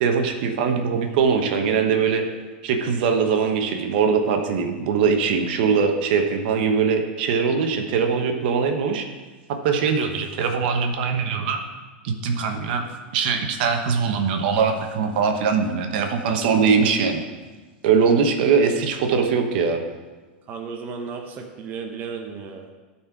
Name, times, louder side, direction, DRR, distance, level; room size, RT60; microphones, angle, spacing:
voice 1, 0.0-2.2 2.6-9.0 9.6-11.6 12.0-12.8 13.1-17.2 17.8-19.8, right 5 dB, 65° right, 4 dB, 1.0 m, -21 dB
voice 2, 20.5-22.7, right 5 dB, 35° right, 2 dB, 0.9 m, -34 dB
12.0 x 4.3 x 4.6 m, 1.3 s
supercardioid pair, 125°, 6 cm